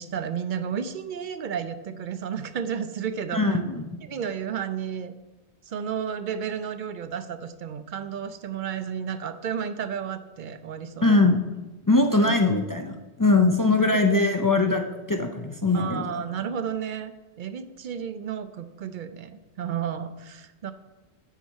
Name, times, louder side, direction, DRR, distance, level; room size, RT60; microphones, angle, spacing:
voice 1, 0.0-3.6 4.0-5.1 5.7-11.2 12.2-12.4 13.9-14.0 15.7-17.1 17.4-19.3 19.6-20.7, right 8 dB, 55° right, 11 dB, 0.6 m, -32 dB
voice 2, 3.3-4.0 11.0-11.4 11.9-16.1, left 2 dB, 30° left, 4 dB, 0.4 m, -21 dB
9.2 x 4.1 x 6.3 m, 1.1 s
omnidirectional pair, 1.1 m